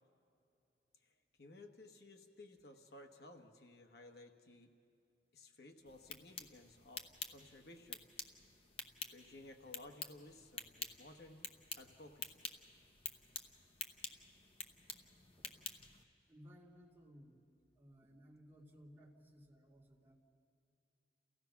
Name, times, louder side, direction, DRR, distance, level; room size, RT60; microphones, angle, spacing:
voice 1, 1.4-4.7 5.3-8.0 9.1-11.5 11.8-12.4, left 2 dB, 65° left, 4 dB, 1.2 m, -57 dB
sound 1, 5.9-16.0, left 5 dB, 35° left, 0.8 m, -49 dB
voice 2, 16.3-17.4 17.8-20.2, equal, 15° right, -5 dB, 2.4 m, -60 dB
29.0 x 16.0 x 5.9 m, 2.7 s
head